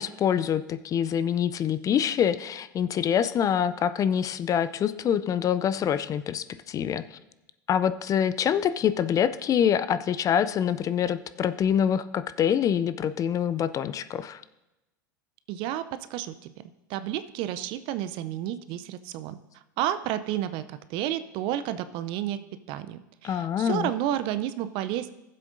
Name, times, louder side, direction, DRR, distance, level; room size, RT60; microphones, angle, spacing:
voice 1, 0.0-7.2 7.7-14.4 23.2-23.9, left 9 dB, 35° left, 14 dB, 0.4 m, -25 dB
voice 2, 15.5-15.8 16.1-16.5 16.9-19.4 19.8-22.4 22.7-25.1, right 12 dB, 50° right, 12 dB, 0.5 m, -31 dB
16.0 x 7.6 x 2.6 m, 0.97 s
hypercardioid pair, 80°, 11 cm